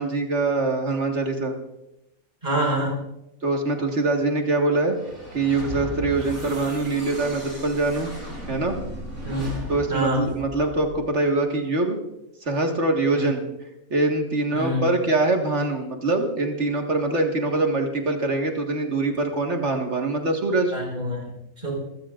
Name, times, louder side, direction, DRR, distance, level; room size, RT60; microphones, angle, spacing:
voice 1, 0.0-1.5 3.4-5.0 5.3-8.1 8.5-8.8 9.7-12.0 12.4-13.5 13.9-20.7, right 2 dB, 55° right, 2 dB, 2.1 m, -23 dB
voice 2, 2.4-3.0 9.2-9.5 9.9-10.2 13.1-13.3 14.5-14.8 20.7-21.7, equal, 35° right, -2 dB, 5.3 m, -26 dB
sound 1, 4.9-11.1, right 1 dB, 75° right, 5.8 m, -36 dB
26.0 x 16.5 x 2.5 m, 0.88 s
omnidirectional pair, 1.5 m